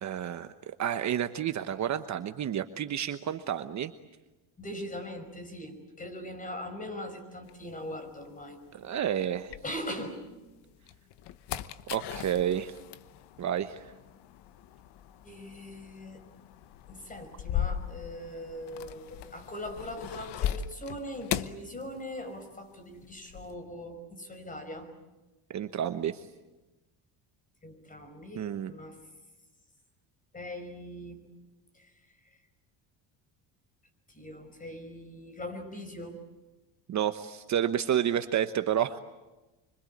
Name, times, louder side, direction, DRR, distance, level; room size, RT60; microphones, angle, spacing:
voice 1, 0.0-3.9 8.7-9.5 11.9-12.8 13.4-13.9 25.5-26.3 28.4-28.7 36.9-39.0, right 10 dB, 40° right, 9 dB, 1.1 m, -30 dB
voice 2, 4.6-8.6 9.6-10.2 15.2-16.2 16.9-24.9 27.6-29.0 30.3-31.3 31.7-31.9 34.1-36.2, left 1 dB, 20° left, 7 dB, 5.6 m, -41 dB
sound 1, 7.5-10.2 10.7-22.5 22.7-23.5, left 10 dB, 65° left, 1.2 m, -38 dB
26.0 x 25.0 x 8.6 m, 1.1 s
cardioid pair, 140°, 44 cm